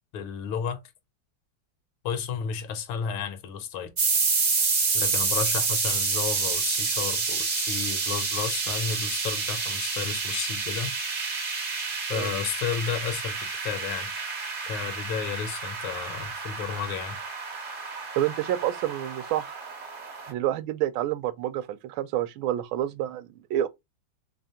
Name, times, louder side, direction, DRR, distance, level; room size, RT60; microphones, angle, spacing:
voice 1, 0.1-0.8 2.0-3.9 4.9-10.9 12.1-14.1 14.6-17.2, left 7 dB, 90° left, 1.6 m, -32 dB
sound 1, 4.0-20.3, right 4 dB, 50° right, 0.6 m, -29 dB
voice 2, 18.2-19.5 20.3-23.7, right 12 dB, 80° right, 1.4 m, -28 dB
3.7 x 3.5 x 2.7 m
omnidirectional pair, 2.2 m